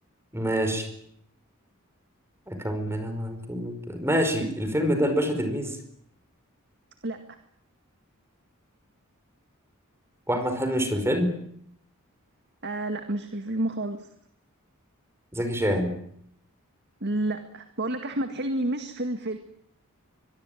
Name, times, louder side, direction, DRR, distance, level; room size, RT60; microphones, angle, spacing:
voice 1, 0.3-0.9 2.5-5.8 10.3-11.3 15.3-15.9, equal, 10° right, 7 dB, 4.9 m, -26 dB
voice 2, 7.0-7.4 12.6-14.1 17.0-19.4, right 1 dB, 50° right, 7 dB, 2.0 m, -30 dB
24.5 x 22.0 x 9.2 m, 0.69 s
head